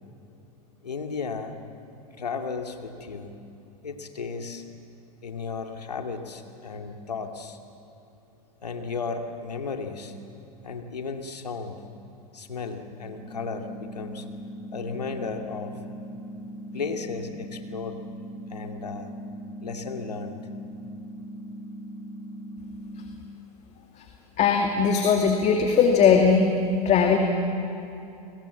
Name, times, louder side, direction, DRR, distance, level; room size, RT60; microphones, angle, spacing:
voice 1, 0.8-1.5 2.2-3.3 3.8-4.6 5.2-7.6 8.6-10.1 10.6-11.8 12.3-14.3 14.7-15.8 16.7-18.0 18.5-19.1 19.6-20.4, left 5 dB, 85° left, 4 dB, 2.4 m, -34 dB
sound 1, 13.1-23.2, equal, 20° right, 5.3 m, -40 dB
voice 2, 24.4-26.5 26.8-27.2, left 6 dB, 35° left, 3 dB, 2.4 m, -19 dB
29.5 x 22.0 x 7.3 m, 2.8 s
hypercardioid pair, 90°, 20 cm